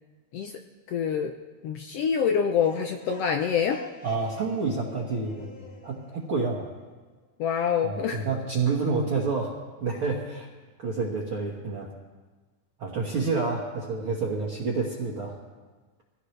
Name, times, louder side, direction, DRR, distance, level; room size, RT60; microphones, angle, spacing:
voice 1, 0.9-1.3 1.6-3.8 7.4-8.2, left 7 dB, 80° left, 5 dB, 1.4 m, -26 dB
sound 1, 2.4-7.1, left 3 dB, 40° left, 1.2 m, -46 dB
voice 2, 4.0-6.7 7.8-9.5 9.8-10.5 10.8-11.9 12.8-15.4, right 4 dB, 50° right, -3 dB, 1.9 m, -29 dB
22.5 x 16.5 x 3.3 m, 1.3 s
omnidirectional pair, 3.7 m